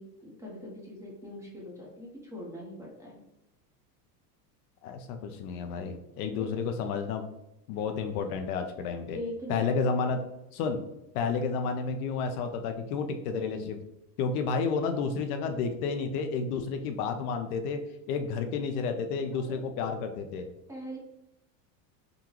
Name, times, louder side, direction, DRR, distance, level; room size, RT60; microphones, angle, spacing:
voice 1, 0.0-3.2 6.3-6.6 9.1-9.7 19.3-19.9 20.7-21.0, equal, 5° right, -4 dB, 0.9 m, -42 dB
voice 2, 4.8-7.3 7.7-9.2 9.5-10.2 10.5-10.8 11.1-13.8 14.2-17.8 18.1-20.5, left 5 dB, 60° left, 6 dB, 0.5 m, -31 dB
3.7 x 2.3 x 2.9 m, 0.90 s
supercardioid pair, 130°, 50 cm